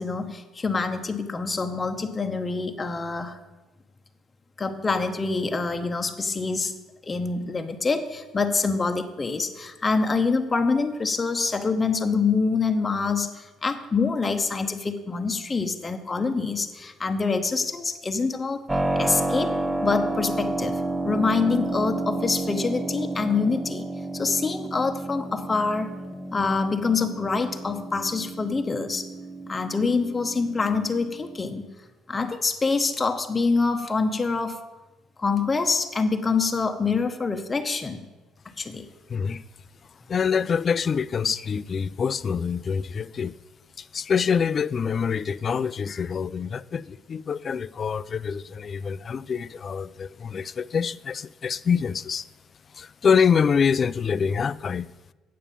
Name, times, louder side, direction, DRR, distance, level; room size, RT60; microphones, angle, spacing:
voice 1, 0.0-3.4 4.6-6.8 7.0-18.6 18.9-19.5 19.8-20.8 21.0-23.8 24.1-25.9 26.3-29.1 29.5-31.7 32.1-34.6 35.2-38.1 38.6-38.8, left 4 dB, 25° left, 0.8 m, -25 dB
Keyboard (musical), 18.7-31.4, right 2 dB, 10° right, 0.7 m, -31 dB
voice 2, 39.1-39.4 40.1-43.4 43.8-52.3 52.7-54.9, left 6 dB, 40° left, 0.3 m, -25 dB
8.5 x 7.2 x 6.8 m
cardioid pair, 95°, 0 cm